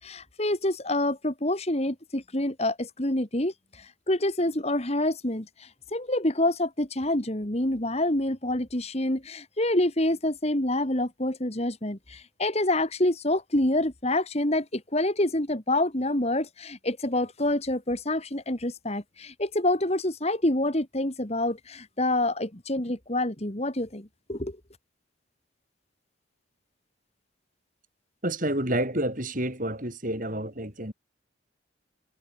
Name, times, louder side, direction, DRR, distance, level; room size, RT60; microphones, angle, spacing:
voice 1, 0.0-24.6, left 1 dB, 30° left, 2.4 m, -27 dB
voice 2, 28.2-30.9, right 1 dB, 40° right, 7.1 m, -29 dB
head